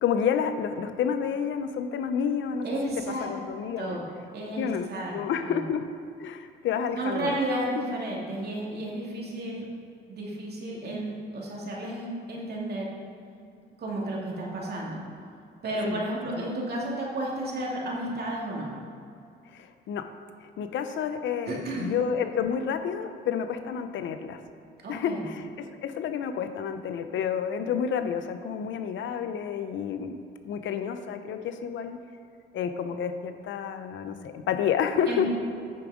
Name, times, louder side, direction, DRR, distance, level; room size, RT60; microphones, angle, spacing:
voice 1, 0.0-2.7 3.2-4.0 4.6-5.8 6.2-7.4 15.8-16.0 16.5-16.6 19.5-20.1 20.6-24.4 24.9-30.2 30.4-32.0 32.5-35.3, left 7 dB, 70° left, 8 dB, 0.7 m, -30 dB
voice 2, 2.6-3.3 3.8-4.1 4.3-5.1 5.4-5.6 6.9-9.6 10.1-12.9 13.8-15.0 15.6-18.7 21.4-21.9 24.8-25.2 35.1-35.3, right 1 dB, 55° right, -4 dB, 2.5 m, -32 dB
8.8 x 7.0 x 5.0 m, 2.5 s
cardioid pair, 90°, 20 cm